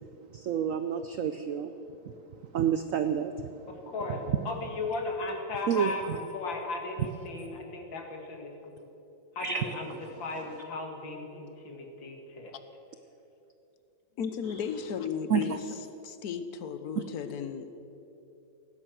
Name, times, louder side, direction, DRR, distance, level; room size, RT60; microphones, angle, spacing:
voice 1, 0.3-1.7 2.5-3.3 5.7-5.9 9.4-9.7 15.3-15.5, right 8 dB, 75° right, 9 dB, 0.7 m, -28 dB
voice 2, 3.7-8.5 8.8-8.9 9.4-12.5, left 3 dB, 80° left, 2 dB, 2.6 m, -36 dB
voice 3, 14.2-15.6 16.0-17.7, left 7 dB, 60° left, 10 dB, 1.3 m, -34 dB
17.0 x 9.9 x 7.7 m, 3.0 s
omnidirectional pair, 2.1 m